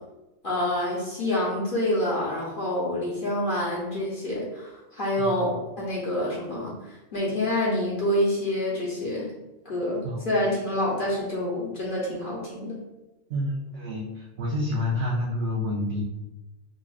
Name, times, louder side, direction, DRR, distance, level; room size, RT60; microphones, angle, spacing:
voice 1, 0.4-9.3 9.6-12.8, left 1 dB, 40° left, -6 dB, 0.9 m, -27 dB
voice 2, 5.2-5.5 10.0-10.3 13.3-16.0, left 1 dB, 60° right, -5 dB, 0.7 m, -29 dB
5.2 x 2.4 x 2.4 m, 0.99 s
omnidirectional pair, 1.6 m